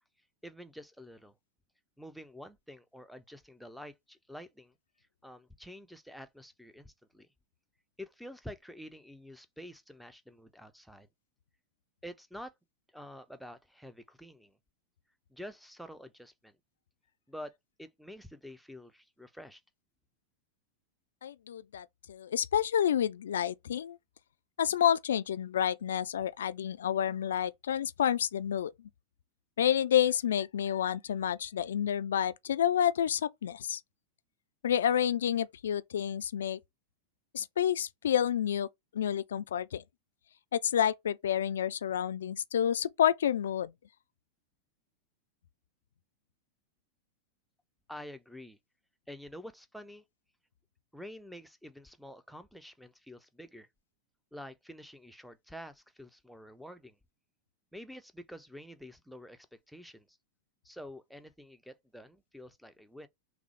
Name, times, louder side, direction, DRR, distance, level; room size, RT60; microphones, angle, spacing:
voice 1, 0.4-1.3 2.0-7.3 8.0-11.1 12.0-12.5 12.9-14.6 15.3-16.6 17.3-17.5 17.8-19.6 47.9-48.6 49.1-50.0 50.9-53.7 54.3-57.0 57.7-60.2 60.6-63.1, equal, ahead, 0.5 m, -48 dB
voice 2, 21.2-24.0 24.6-28.7 29.6-33.8 34.6-36.6 37.3-38.7 38.9-39.8 40.5-43.7, left 9 dB, 65° left, 0.3 m, -29 dB
5.9 x 2.0 x 3.2 m
figure-of-eight pair, 90°, 0 cm